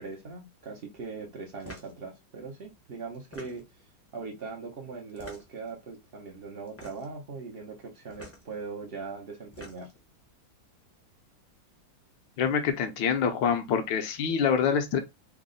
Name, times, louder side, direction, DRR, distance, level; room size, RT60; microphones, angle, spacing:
voice 1, 0.0-3.6 4.1-9.9, right 4 dB, 80° right, 0.5 m, -40 dB
sound 1, 1.6-2.0 3.1-3.8 5.1-5.7 6.7-7.2 8.1-8.4 9.3-10.0, left 1 dB, 25° left, 0.3 m, -47 dB
voice 2, 12.4-15.0, left 7 dB, 80° left, 1.4 m, -26 dB
3.5 x 2.1 x 3.7 m
omnidirectional pair, 2.0 m